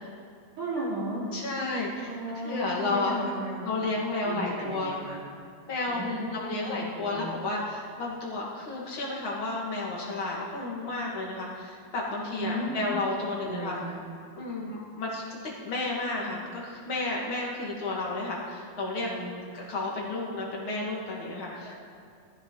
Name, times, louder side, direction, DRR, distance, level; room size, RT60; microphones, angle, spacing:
voice 1, 0.6-1.3 2.0-3.6 4.2-5.2 5.9-7.3 12.4-12.9 13.4-14.0 19.1-19.4 21.5-21.8, right 1 dB, 60° right, -8 dB, 5.8 m, -35 dB
voice 2, 1.3-2.1 2.4-3.2 3.6-4.9 5.7-13.8 14.4-19.1 19.5-21.7, left 2 dB, 35° left, -3 dB, 2.8 m, -32 dB
20.0 x 14.0 x 4.1 m, 2.2 s
omnidirectional pair, 4.3 m